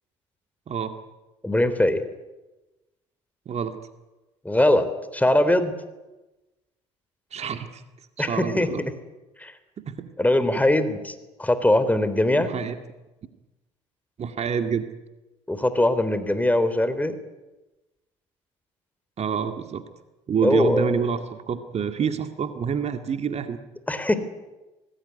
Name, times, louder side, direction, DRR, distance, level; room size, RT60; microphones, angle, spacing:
voice 1, 1.4-2.0 4.5-5.7 8.2-8.7 9.4-9.5 10.2-11.1 11.4-12.5 15.5-17.2 20.4-21.0 23.9-24.2, left 1 dB, 10° left, 11 dB, 3.6 m, -21 dB
voice 2, 3.5-3.8 7.3-7.8 8.2-8.9 9.8-10.1 10.5-10.6 12.3-12.8 14.2-14.9 19.2-19.8 20.3-23.6, right 7 dB, 45° right, 8 dB, 2.1 m, -27 dB
26.0 x 19.0 x 9.6 m, 1.1 s
hypercardioid pair, 55°, 15 cm